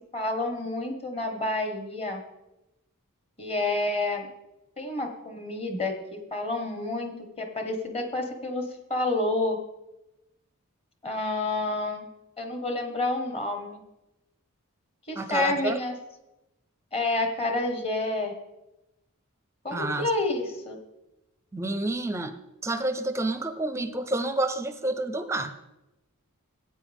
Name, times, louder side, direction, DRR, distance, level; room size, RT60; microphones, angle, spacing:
voice 1, 0.1-2.2 3.4-4.3 4.8-5.9 6.3-8.6 8.9-9.6 11.0-12.1 12.4-13.8 15.1-15.9 16.9-18.3 19.6-20.8, left 2 dB, 25° left, 4 dB, 1.4 m, -29 dB
voice 2, 15.2-15.8 19.7-20.1 21.5-22.3 22.6-25.5, right 2 dB, 15° right, 10 dB, 0.5 m, -29 dB
15.0 x 9.0 x 3.6 m, 0.94 s
head